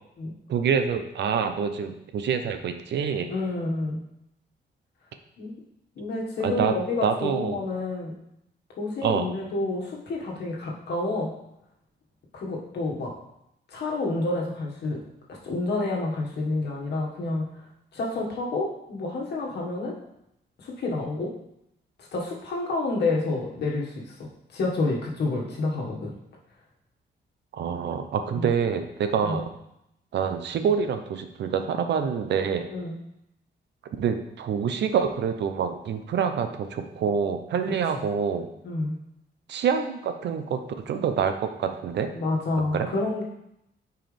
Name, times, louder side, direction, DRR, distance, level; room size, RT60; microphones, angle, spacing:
voice 1, 0.5-3.3 6.4-6.7 7.0-7.6 9.0-9.2 27.5-29.5 30.1-32.7 34.0-38.5 39.5-40.6 40.9-42.1 42.7-42.9, right 7 dB, 75° right, 7 dB, 0.7 m, -26 dB
voice 2, 3.3-4.0 5.4-5.5 5.9-8.2 8.8-11.3 12.3-13.1 13.7-15.0 15.3-17.5 17.9-19.9 20.6-21.3 22.1-26.1 28.3-28.5 29.2-29.4 32.7-33.0 37.9-38.0 38.6-39.0 42.1-43.2, left 2 dB, 70° left, -2 dB, 1.7 m, -29 dB
9.2 x 4.7 x 3.4 m, 0.81 s
wide cardioid pair, 175°, 18 cm